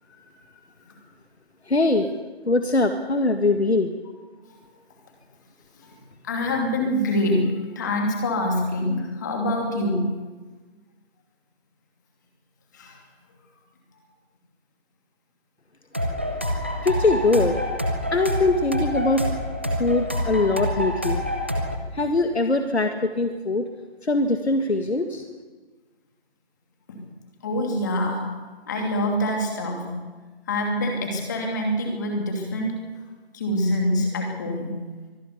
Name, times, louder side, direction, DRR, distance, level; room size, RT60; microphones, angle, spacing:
voice 1, 1.7-2.1 2.5-3.9 16.8-17.6 18.1-19.3 19.8-21.2 21.9-23.6 24.0-25.2, left 2 dB, 80° left, 6 dB, 2.1 m, -22 dB
voice 2, 6.2-10.1 12.7-13.0 26.9-27.0 27.4-28.3 28.7-29.9 30.5-32.9 33.3-34.7, left 1 dB, 15° left, 2 dB, 2.8 m, -25 dB
sound 1, 15.9-21.8, left 1 dB, 10° right, 0.7 m, -27 dB
24.0 x 13.0 x 9.8 m, 1.3 s
figure-of-eight pair, 170°, 32 cm